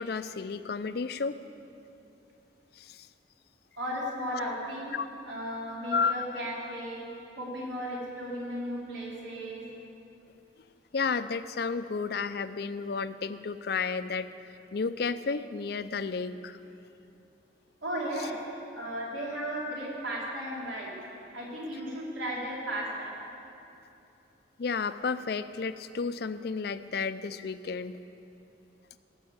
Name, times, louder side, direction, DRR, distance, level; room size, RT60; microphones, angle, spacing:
voice 1, 0.0-1.4 2.8-3.1 4.9-5.1 5.9-6.3 10.9-14.3 14.7-16.6 24.6-28.0, left 5 dB, 55° left, 13 dB, 0.4 m, -32 dB
voice 2, 3.8-4.9 5.2-7.0 7.4-9.6 17.8-18.3 18.7-20.9 21.3-23.2, equal, 85° right, -5 dB, 3.7 m, -35 dB
17.0 x 6.3 x 8.0 m, 2.8 s
head